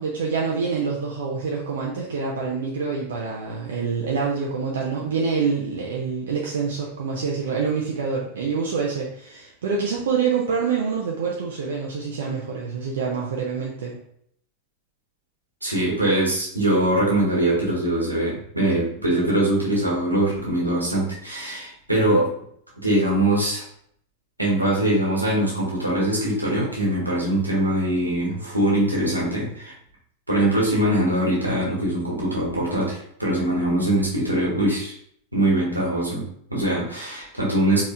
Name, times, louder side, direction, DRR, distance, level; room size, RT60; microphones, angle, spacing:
voice 1, 0.0-14.0, right 5 dB, 60° right, -2 dB, 0.5 m, -26 dB
voice 2, 15.6-22.3 22.8-23.6 24.4-29.7 30.3-34.9 35.3-37.8, right 1 dB, 85° right, -4 dB, 1.3 m, -22 dB
4.4 x 3.1 x 2.4 m, 0.67 s
figure-of-eight pair, 90°, 0 cm